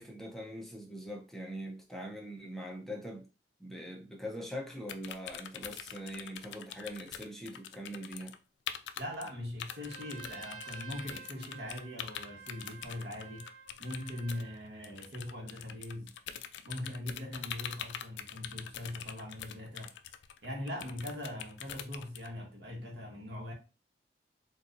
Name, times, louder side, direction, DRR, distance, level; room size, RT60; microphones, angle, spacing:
voice 1, 0.0-3.3 3.6-8.4, equal, ahead, 0.6 m, -42 dB
sound 1, 4.9-8.4 8.7-9.3 9.6-22.3, left 9 dB, 85° left, 0.3 m, -44 dB
voice 2, 9.0-13.5 13.8-16.1 16.6-19.9 20.4-23.5, left 1 dB, 80° right, 1.2 m, -41 dB
Trumpet, 9.6-14.7, right 6 dB, 50° right, 1.1 m, -50 dB
4.1 x 2.4 x 2.6 m
head